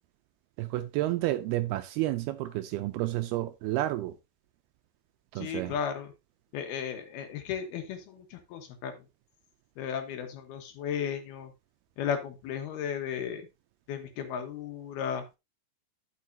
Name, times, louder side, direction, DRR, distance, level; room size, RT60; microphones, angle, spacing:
voice 1, 0.6-4.1 5.3-5.7, right 16 dB, 80° right, 2.3 m, -30 dB
voice 2, 5.4-6.1 6.5-9.0 9.8-11.5 12.0-13.5 13.9-15.2, left 8 dB, 70° left, 3.0 m, -35 dB
12.0 x 6.3 x 2.7 m
omnidirectional pair, 4.8 m